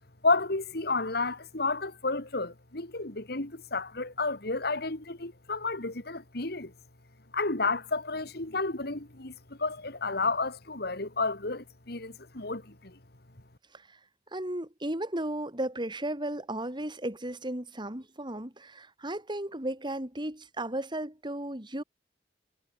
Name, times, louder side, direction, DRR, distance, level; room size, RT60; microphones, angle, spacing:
voice 1, 0.2-6.7 7.3-13.0, left 3 dB, 60° left, 2.6 m, -31 dB
voice 2, 14.3-21.8, right 1 dB, 25° right, 3.8 m, -35 dB
head